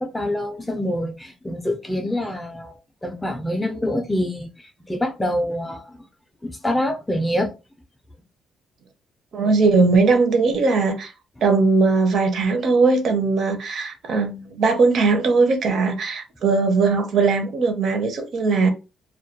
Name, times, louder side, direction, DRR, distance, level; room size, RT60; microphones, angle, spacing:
voice 1, 0.0-2.7 3.0-4.5 4.8-6.0 6.4-7.5, left 1 dB, 10° left, 0.4 m, -25 dB
voice 2, 9.3-11.1 11.4-18.7, right 4 dB, 55° right, 0.5 m, -19 dB
2.2 x 2.2 x 2.7 m
cardioid pair, 140°, 0 cm